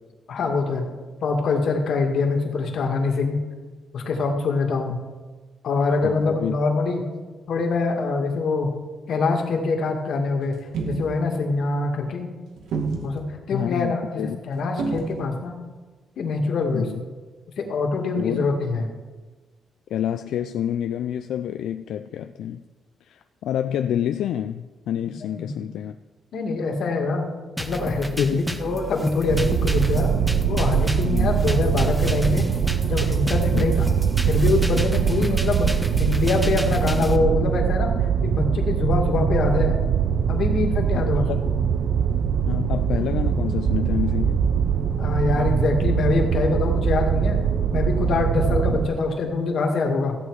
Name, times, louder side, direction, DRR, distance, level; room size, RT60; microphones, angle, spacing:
voice 1, 0.3-0.9 1.2-3.4 3.9-5.0 5.6-7.0 7.5-8.7 9.1-10.5 10.8-12.3 13.0-15.6 16.2-16.9 17.6-18.8 25.4-25.5 26.3-27.3 27.6-30.1 30.5-32.5 32.8-33.9 34.3-35.7 36.0-37.9 38.2-39.8 40.3-41.3 45.0-47.4 47.7-50.2, left 3 dB, 55° left, 2 dB, 1.9 m, -24 dB
voice 2, 6.0-6.5 13.5-14.4 16.7-17.0 18.2-18.4 19.9-22.6 23.0-26.0 28.2-28.4 31.1-31.3 33.5-33.7 40.9-41.4 42.5-44.5, left 10 dB, 80° left, 9 dB, 0.4 m, -28 dB
sound 1, 10.5-11.1 12.6-13.2 14.8-15.2, right 4 dB, 85° right, 2.0 m, -28 dB
sound 2, 27.6-37.2, right 1 dB, 5° right, 0.6 m, -32 dB
sound 3, 29.3-48.9, right 7 dB, 60° right, 0.6 m, -22 dB
14.5 x 8.4 x 4.8 m, 1.3 s
cardioid pair, 165°, 0 cm